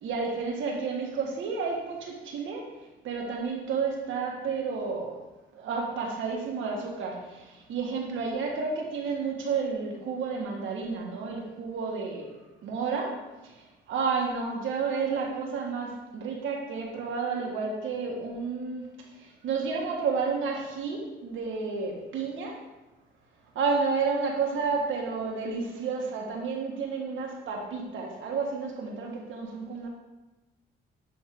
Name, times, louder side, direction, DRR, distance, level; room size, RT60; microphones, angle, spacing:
voice 1, 0.0-2.7 3.0-5.2 5.5-12.3 12.6-18.9 19.2-22.6 23.5-29.9, right 5 dB, 80° right, 0 dB, 1.6 m, -31 dB
10.0 x 3.6 x 3.7 m, 1.1 s
cardioid pair, 90°, 20 cm